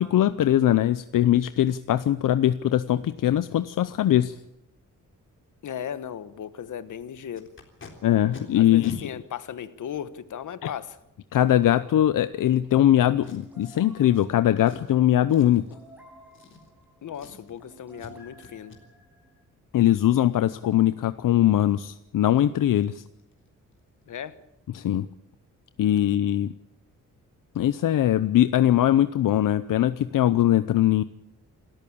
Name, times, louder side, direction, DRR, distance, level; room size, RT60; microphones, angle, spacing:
voice 1, 0.0-4.4 8.0-9.1 10.6-10.7 11.3-15.7 19.7-23.0 24.7-25.1 25.8-26.5 27.6-31.0, left 12 dB, 85° left, 13 dB, 0.8 m, -21 dB
voice 2, 5.6-7.5 8.6-11.0 17.0-18.7 24.1-24.4, left 9 dB, 70° left, 14 dB, 1.3 m, -36 dB
Packing tape duct tape, 7.3-7.9 8.3-8.4 8.8-9.0 9.8-9.9 13.2-13.7 14.1-14.3 14.6-14.9 15.3-15.7 16.3-16.9 17.1-17.6 18.0-18.1 18.4-18.8 21.8-21.9 22.3-22.4 22.8-22.9 23.2-23.5 23.7-23.8, left 4 dB, 40° left, 3.6 m, -44 dB
sound 1, 13.2-19.4, right 1 dB, 5° right, 7.9 m, -53 dB
28.0 x 14.0 x 8.6 m, 0.82 s
wide cardioid pair, 175°, 32 cm